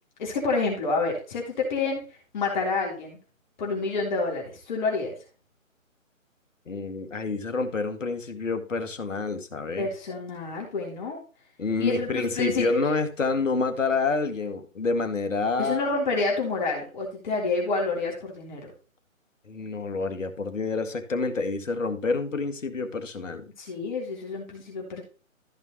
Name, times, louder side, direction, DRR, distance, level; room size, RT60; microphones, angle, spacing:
voice 1, 0.2-2.0 2.3-3.2 3.6-5.2 9.8-11.2 11.8-12.8 15.6-18.7 23.6-25.0, left 3 dB, 35° left, -1 dB, 3.4 m, -28 dB
voice 2, 6.7-9.9 11.6-15.9 19.5-23.5, left 4 dB, 65° left, 7 dB, 2.1 m, -28 dB
14.5 x 5.5 x 2.9 m, 0.36 s
figure-of-eight pair, 150°, 41 cm